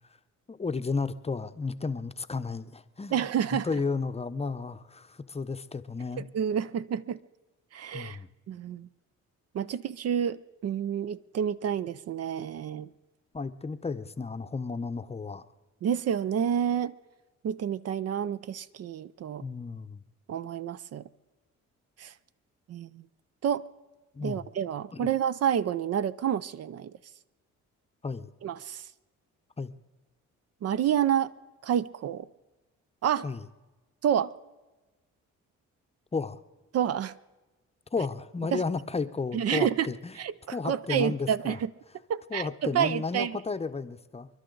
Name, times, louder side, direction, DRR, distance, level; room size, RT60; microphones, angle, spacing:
voice 1, 0.5-3.3 3.6-6.3 7.9-8.3 13.3-15.5 19.4-20.0 24.1-24.5 24.9-25.1 28.0-28.3 29.6-29.7 33.2-33.5 36.1-36.4 37.9-40.1 40.5-41.6 42.3-44.3, left 4 dB, 20° left, 9 dB, 0.7 m, -33 dB
voice 2, 3.1-3.7 6.2-7.2 7.7-8.2 8.5-8.9 9.5-12.9 15.8-16.9 17.4-19.4 20.3-21.0 22.0-22.1 22.7-23.0 23.4-23.6 24.2-26.9 28.4-28.9 30.6-31.3 31.6-32.3 33.0-33.3 34.0-34.3 36.7-37.1 38.5-38.6 39.3-39.9 40.2-41.7 42.1-43.4, right 9 dB, 55° right, 15 dB, 0.5 m, -29 dB
28.5 x 11.5 x 3.9 m, 1.2 s
cardioid pair, 90°, 30 cm